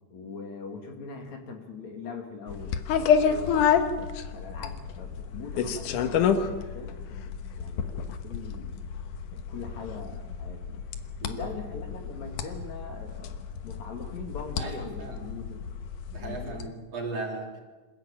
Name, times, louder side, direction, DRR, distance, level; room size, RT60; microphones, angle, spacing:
voice 1, 0.1-2.8 3.3-8.8 9.3-10.8 11.2-13.4 13.6-15.7 16.2-16.6, left 4 dB, 60° left, 4 dB, 3.6 m, -42 dB
sound 1, 2.5-16.7, left 7 dB, 80° left, 2.7 m, -29 dB
voice 2, 3.2-3.7 11.2-11.5 14.6-15.3 16.1-17.6, right 2 dB, 50° right, 0 dB, 4.8 m, -37 dB
27.0 x 15.0 x 8.9 m, 1.3 s
omnidirectional pair, 3.6 m